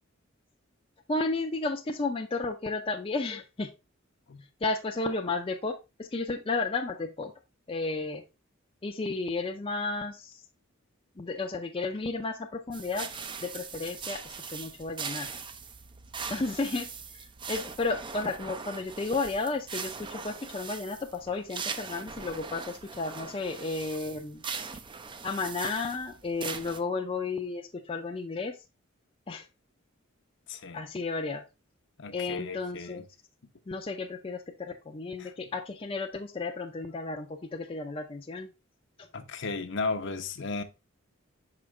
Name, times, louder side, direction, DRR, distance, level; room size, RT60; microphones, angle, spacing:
voice 1, 1.1-3.7 4.6-7.3 7.7-8.2 8.8-10.4 11.2-13.1 13.4-15.3 16.3-16.9 17.5-24.4 25.2-28.6 29.3-29.4 30.7-31.4 32.1-33.0 33.7-38.5, left 3 dB, 25° left, 0.5 m, -33 dB
sound 1, 12.7-26.8, right 5 dB, 25° right, 0.4 m, -40 dB
voice 2, 30.5-30.8 32.0-33.0 35.2-35.3 39.1-40.6, left 3 dB, 60° left, 0.7 m, -35 dB
6.1 x 4.9 x 3.1 m
head